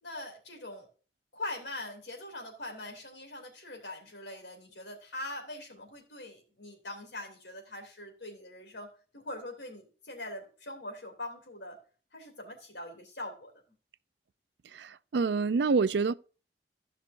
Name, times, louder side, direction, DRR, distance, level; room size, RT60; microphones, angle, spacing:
voice 1, 0.0-0.9 1.3-11.8 12.1-13.5, left 1 dB, 80° left, 2.8 m, -42 dB
voice 2, 14.7-16.1, right 4 dB, 70° right, 0.4 m, -27 dB
15.5 x 5.8 x 2.5 m
head